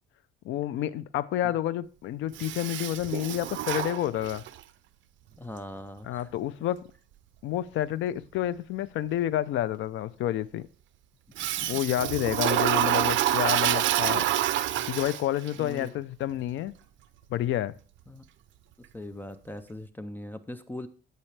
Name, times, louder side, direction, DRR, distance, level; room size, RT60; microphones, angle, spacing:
voice 1, 0.4-4.4 6.0-6.8 7.4-10.7 11.7-14.3 14.9-16.8 17.3-17.8, left 12 dB, 75° left, 0.5 m, -29 dB
Toilet flush, 2.3-4.6 11.4-15.5, right 13 dB, 70° right, 0.6 m, -27 dB
voice 2, 5.4-6.3 11.6-11.8 15.6-15.9 18.1-18.2 18.9-20.9, left 1 dB, 10° left, 0.5 m, -40 dB
16.0 x 5.5 x 3.3 m
cardioid pair, 165°, 20 cm